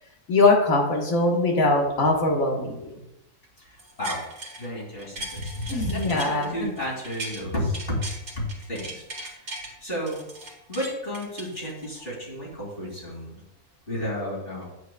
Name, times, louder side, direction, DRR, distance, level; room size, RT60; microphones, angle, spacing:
voice 1, 0.3-2.9 5.7-6.7, left 2 dB, 85° left, 0 dB, 1.8 m, -22 dB
voice 2, 3.6-4.2 4.6-8.1 8.3-9.5 9.8-10.2 10.7-13.4 13.9-14.7, left 1 dB, 40° left, -5 dB, 2.9 m, -32 dB
sound 1, 3.8-4.7 5.0-7.4 7.7-9.7 10.1-12.1 12.5-12.6, right 1 dB, 60° right, 1.8 m, -38 dB
9.3 x 7.7 x 2.3 m, 0.86 s
omnidirectional pair, 1.4 m